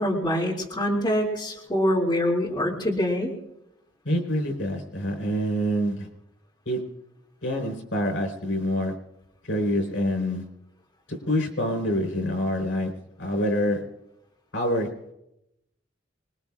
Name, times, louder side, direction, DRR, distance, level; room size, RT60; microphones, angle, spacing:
voice 1, 0.0-3.3, equal, 25° left, -3 dB, 2.6 m, -25 dB
voice 2, 4.0-6.1 6.7-6.8 7.4-8.9 9.4-10.5 11.1-12.9 13.2-13.8 14.5-14.9, equal, 85° left, 3 dB, 4.3 m, -26 dB
25.5 x 21.5 x 2.4 m, 0.87 s
head